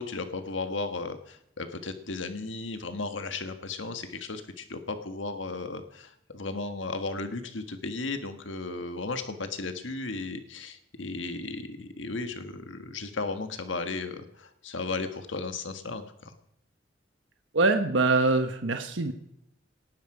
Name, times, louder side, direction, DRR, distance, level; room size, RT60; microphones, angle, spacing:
voice 1, 0.0-16.3, left 3 dB, 85° left, 8 dB, 1.5 m, -35 dB
voice 2, 17.5-19.1, right 3 dB, 90° right, 6 dB, 1.2 m, -24 dB
19.0 x 12.5 x 4.9 m, 0.75 s
head